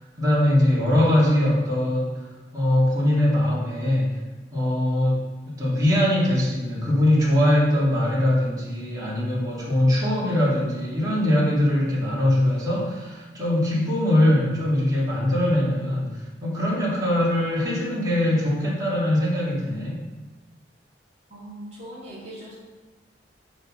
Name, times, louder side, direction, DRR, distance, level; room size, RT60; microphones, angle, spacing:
voice 1, 0.2-2.1 2.5-4.1 4.5-20.0, left 1 dB, 20° right, -8 dB, 2.7 m, -22 dB
voice 2, 21.3-22.5, right 1 dB, 35° right, -9 dB, 2.2 m, -40 dB
9.1 x 4.1 x 6.2 m, 1.2 s
head